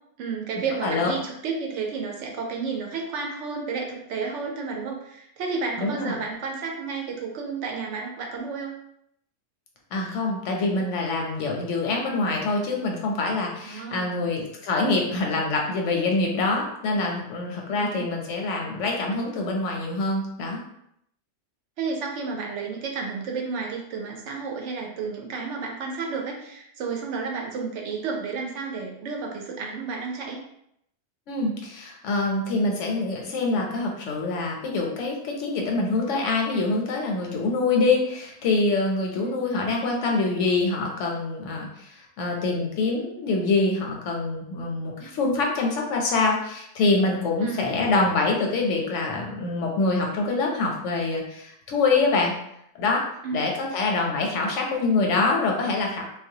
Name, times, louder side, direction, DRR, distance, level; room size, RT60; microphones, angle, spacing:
voice 1, 0.2-8.7 13.6-14.2 17.7-18.1 21.8-30.4 39.1-39.7 47.4-47.7 53.2-53.4, right 4 dB, 80° right, 1 dB, 0.9 m, -32 dB
voice 2, 5.8-6.2 9.9-20.6 31.3-52.3 52.8-53.0 53.3-56.0, left 3 dB, 90° left, 0 dB, 0.9 m, -25 dB
2.3 x 2.0 x 2.7 m, 0.75 s
omnidirectional pair, 1.2 m